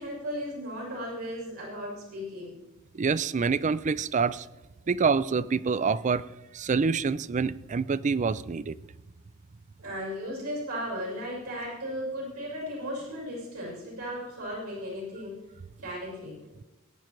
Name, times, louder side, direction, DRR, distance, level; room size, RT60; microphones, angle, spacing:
voice 1, 0.0-2.5 9.8-15.4 15.8-16.4, equal, 70° right, 6.1 m, -36 dB
voice 2, 2.9-4.5 4.9-6.2 6.5-8.8, right 5 dB, 35° right, 0.4 m, -26 dB
21.0 x 9.5 x 4.5 m
head